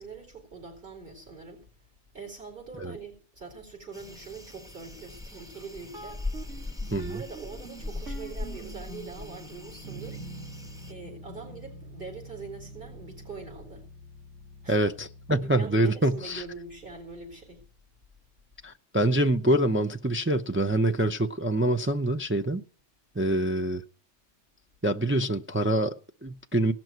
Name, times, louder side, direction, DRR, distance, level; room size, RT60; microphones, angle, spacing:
voice 1, 0.0-1.6 2.1-6.2 7.0-10.2 10.9-13.9 14.6-14.9 15.4-17.6, right 4 dB, 45° right, 4.5 m, -43 dB
sound 1, 3.9-10.9, left 3 dB, 5° right, 0.7 m, -40 dB
sound 2, 5.9-15.7, right 2 dB, 80° right, 2.5 m, -45 dB
voice 2, 6.9-7.2 14.7-14.9 15.3-16.4 18.6-22.6 23.2-23.8 24.8-26.7, right 1 dB, 20° right, 0.3 m, -25 dB
17.5 x 6.1 x 9.3 m
omnidirectional pair, 1.2 m